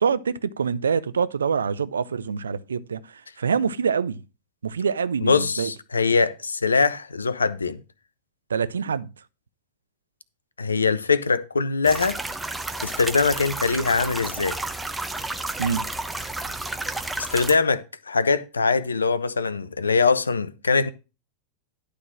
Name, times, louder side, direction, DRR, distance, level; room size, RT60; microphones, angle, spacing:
voice 1, 0.0-4.2 4.6-5.7 8.5-9.1 15.6-15.8, right 6 dB, 70° right, 0.5 m, -25 dB
voice 2, 5.2-7.8 10.6-12.2 12.8-14.6 17.2-20.9, left 4 dB, 75° left, 0.6 m, -22 dB
sound 1, 11.8-17.6, right 2 dB, 5° right, 0.8 m, -31 dB
11.5 x 3.8 x 6.1 m
figure-of-eight pair, 90°, 0 cm